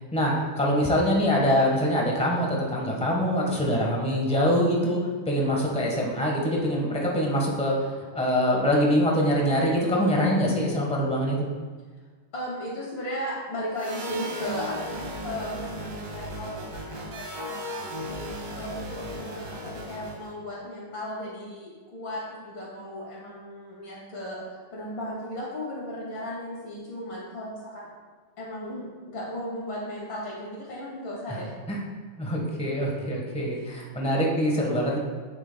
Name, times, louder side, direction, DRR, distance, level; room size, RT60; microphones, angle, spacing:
voice 1, 0.1-5.0 5.3-7.7 8.1-11.5 31.7-31.8 32.2-35.0, equal, 5° left, -2 dB, 0.8 m, -24 dB
voice 2, 12.3-18.1 18.5-27.9 28.4-31.5 33.5-33.9, equal, 70° left, -5 dB, 3.0 m, -36 dB
sound 1, 13.7-20.3, equal, 60° right, 1.9 m, -36 dB
9.1 x 7.4 x 2.3 m, 1.5 s
omnidirectional pair, 2.2 m